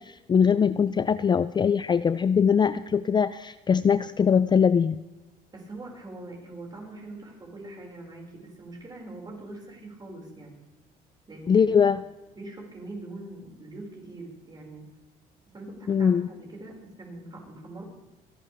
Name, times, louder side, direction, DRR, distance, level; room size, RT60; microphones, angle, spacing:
voice 1, 0.0-5.0 11.5-12.0 15.9-16.3, left 7 dB, 25° left, 14 dB, 0.4 m, -22 dB
voice 2, 5.5-10.6 11.3-11.7 12.3-14.8 15.5-17.8, right 2 dB, 25° right, -1 dB, 5.5 m, -42 dB
28.0 x 11.5 x 3.5 m, 1.0 s
cardioid pair, 110°, 17 cm